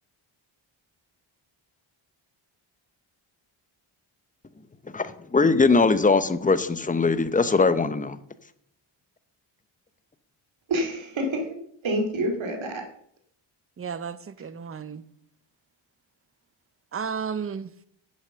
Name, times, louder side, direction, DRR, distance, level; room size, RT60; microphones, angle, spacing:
voice 1, 4.9-8.2, left 4 dB, 15° left, 0.7 m, -21 dB
voice 2, 10.7-12.8, right 1 dB, 65° right, 2.4 m, -28 dB
voice 3, 13.8-15.0 16.9-17.7, right 6 dB, 30° right, 0.6 m, -33 dB
9.6 x 8.2 x 6.8 m
wide cardioid pair, 145°, 50 cm